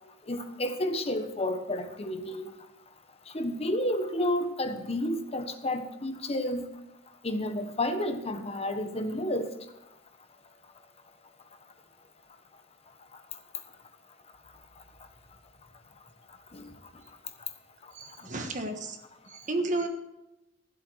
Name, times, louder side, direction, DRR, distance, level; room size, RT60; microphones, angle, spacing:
voice 1, 0.3-2.5 3.3-6.7 7.2-9.5 16.5-16.6, left 1 dB, 30° left, 8 dB, 1.1 m, -31 dB
voice 2, 17.9-19.0 19.3-19.9, right 2 dB, 40° right, 5 dB, 1.4 m, -32 dB
14.0 x 8.0 x 6.3 m, 0.96 s
head